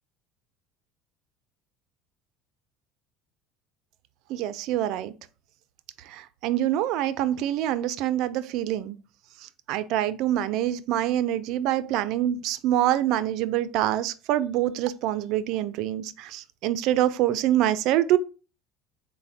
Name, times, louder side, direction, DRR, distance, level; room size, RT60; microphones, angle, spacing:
voice 1, 4.3-5.1 6.0-9.0 9.4-18.2, right 12 dB, 65° right, 0.3 m, -25 dB
4.1 x 2.1 x 4.1 m
hypercardioid pair, 80°, 0 cm